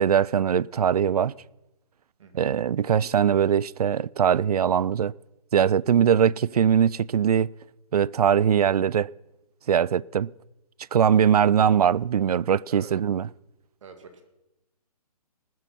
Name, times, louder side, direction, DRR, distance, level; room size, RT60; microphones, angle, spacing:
voice 1, 0.0-1.3 2.3-5.1 5.5-7.5 7.9-9.1 9.7-10.3 10.9-13.3, right 8 dB, 75° right, 0.4 m, -21 dB
voice 2, 2.2-2.6 12.7-12.9 13.2-13.3 13.8-14.2, right 5 dB, 55° right, 2.3 m, -47 dB
19.5 x 7.6 x 5.8 m
hypercardioid pair, 150°, 20 cm